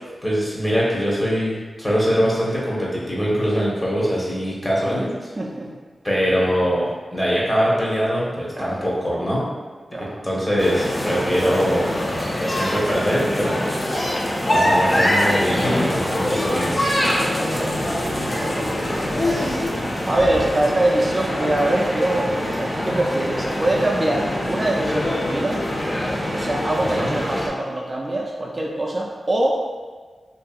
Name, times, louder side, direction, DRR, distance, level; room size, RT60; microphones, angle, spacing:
voice 1, 0.2-5.1 6.0-9.4 10.0-11.9 12.4-13.7 14.5-16.9 27.0-27.1, equal, 25° left, -6 dB, 0.9 m, -22 dB
voice 2, 5.4-5.7 8.5-8.9 9.9-10.2 17.4-18.9 19.2-19.7 20.1-25.6 26.3-29.6, right 1 dB, 40° right, -2 dB, 0.4 m, -24 dB
sound 1, 10.6-27.5, left 1 dB, 40° left, 0.5 m, -24 dB
2.6 x 2.5 x 2.3 m, 1.4 s
cardioid pair, 50°, 0 cm